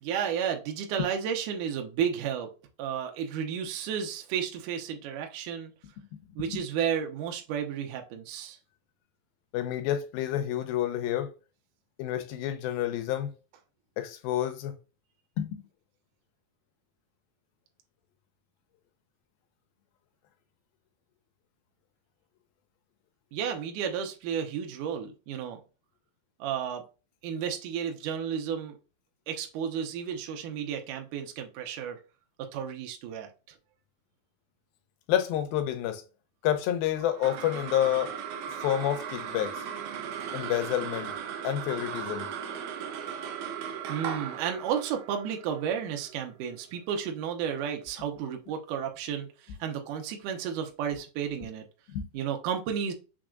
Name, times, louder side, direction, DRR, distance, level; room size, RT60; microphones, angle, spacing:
voice 1, 0.0-2.5 2.8-5.7 6.4-8.6 23.3-25.6 26.4-26.8 27.2-28.8 29.3-32.0 32.4-33.3 43.9-51.6 52.1-52.9, right 8 dB, 75° right, 2.0 m, -32 dB
voice 2, 9.5-11.3 12.0-13.3 14.0-14.7 15.4-15.6 35.1-36.0 36.4-38.2 38.6-39.6 40.3-41.1 41.4-42.3 51.9-52.1, left 11 dB, 80° left, 2.5 m, -29 dB
sound 1, 37.0-47.6, right 8 dB, 90° right, 1.7 m, -38 dB
6.2 x 3.4 x 2.3 m
omnidirectional pair, 4.3 m